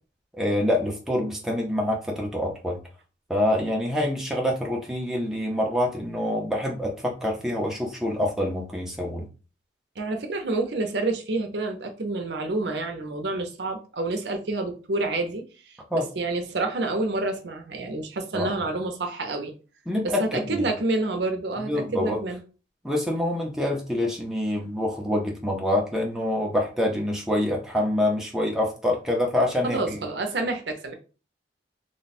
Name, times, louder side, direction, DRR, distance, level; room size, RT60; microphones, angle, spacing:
voice 1, 0.3-2.8 3.3-9.3 15.9-16.1 18.3-18.5 19.9-20.7 21.6-22.2 22.8-30.0, left 1 dB, 5° right, 0.6 m, -26 dB
voice 2, 10.0-19.5 20.0-22.4 29.6-30.9, right 2 dB, 70° right, 0.7 m, -28 dB
3.2 x 2.2 x 4.1 m
head